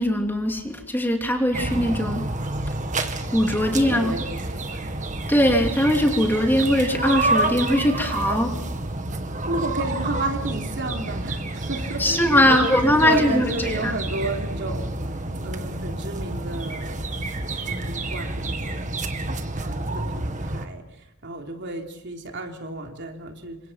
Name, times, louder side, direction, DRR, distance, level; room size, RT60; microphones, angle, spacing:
voice 1, 0.0-2.3 3.3-4.1 5.3-8.5 12.0-13.9, left 1 dB, 10° left, 3 dB, 2.9 m, -21 dB
sound 1, 1.5-20.7, right 2 dB, 35° right, 2.0 m, -29 dB
voice 2, 3.6-5.0 9.5-15.2 15.4-17.1 17.6-18.9 19.5-23.6, right 2 dB, 55° right, 3 dB, 3.6 m, -32 dB
28.5 x 26.0 x 5.8 m, 0.75 s
head